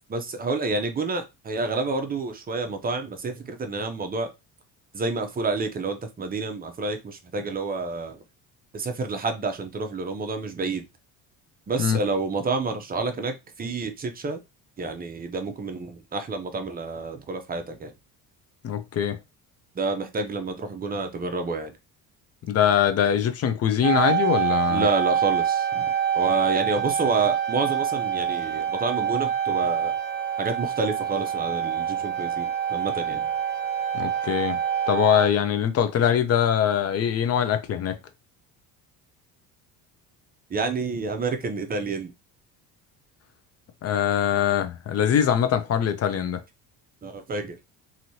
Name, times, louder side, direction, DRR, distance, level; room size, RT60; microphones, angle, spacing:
voice 1, 0.1-4.3 4.9-8.2 8.7-10.9 11.7-14.4 14.8-18.0 19.7-21.7 24.7-25.9 26.1-29.9 30.4-33.3 40.5-42.1 47.0-47.6, right 3 dB, 25° right, 0.6 m, -29 dB
voice 2, 18.6-19.2 22.5-24.9 33.9-34.6 34.9-38.0 43.8-46.4, left 9 dB, 40° left, 0.5 m, -22 dB
sound 1, 23.8-35.3, right 9 dB, 10° right, 1.2 m, -26 dB
3.0 x 2.8 x 2.7 m
cardioid pair, 105°, 40 cm